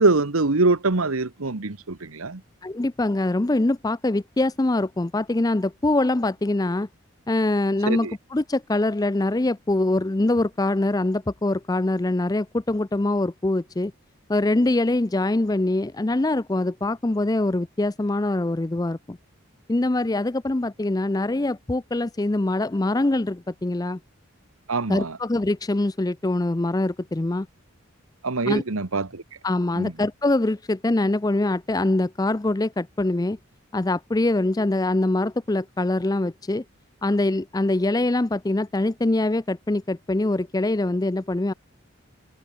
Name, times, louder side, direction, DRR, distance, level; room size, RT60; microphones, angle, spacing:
voice 1, 0.0-2.4 7.9-8.1 24.7-25.2 28.2-29.2 29.7-29.9, right 3 dB, 85° right, 1.3 m, -23 dB
voice 2, 2.6-6.9 7.3-13.9 14.3-19.2 19.7-24.0 24.9-27.5 28.5-28.6 29.4-33.4 33.7-36.6 37.0-41.5, left 2 dB, 15° left, 0.4 m, -23 dB
open air
head